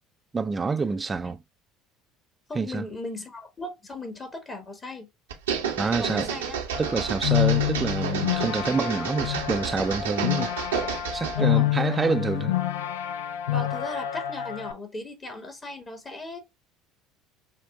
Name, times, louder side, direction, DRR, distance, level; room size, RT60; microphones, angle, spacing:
voice 1, 0.3-1.4 2.5-2.8 5.8-6.3 6.8-10.5 11.1-12.5, right 4 dB, 25° right, 0.4 m, -27 dB
voice 2, 2.5-5.1 5.9-6.6 11.4-12.1 13.5-16.4, left 2 dB, 30° left, 1.2 m, -37 dB
sound 1, 5.3-11.4, right 7 dB, 80° right, 0.8 m, -31 dB
sound 2, 6.7-14.7, left 14 dB, 75° left, 0.4 m, -28 dB
5.8 x 2.2 x 3.4 m
hypercardioid pair, 65°, 0 cm